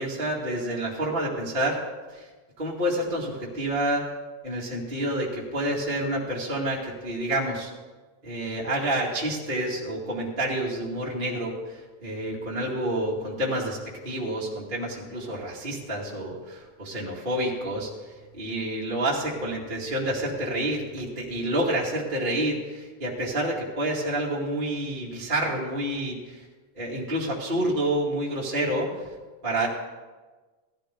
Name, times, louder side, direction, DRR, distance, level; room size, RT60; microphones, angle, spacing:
voice 1, 0.0-1.8 2.1-2.3 2.6-4.0 4.4-7.7 8.2-13.8 14.0-17.9 18.3-26.4 26.7-28.9 29.4-29.7, right 1 dB, 20° right, -6 dB, 2.0 m, -28 dB
17.5 x 13.0 x 3.8 m, 1.3 s
omnidirectional pair, 3.7 m